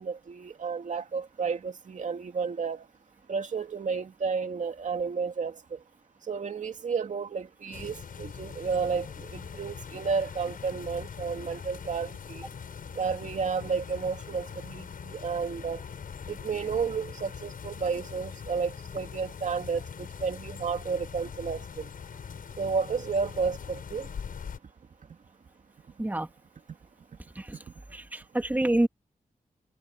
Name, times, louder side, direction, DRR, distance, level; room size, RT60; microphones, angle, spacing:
voice 1, 0.0-2.9 3.3-5.8 6.3-12.5 13.0-15.8 16.3-21.8 22.6-24.1, right 5 dB, 60° right, 2.5 m, -32 dB
sound 1, 7.7-24.6, left 6 dB, 85° left, 6.9 m, -42 dB
voice 2, 27.9-28.9, right 1 dB, 10° right, 2.0 m, -27 dB
wide cardioid pair, 125°, 14 cm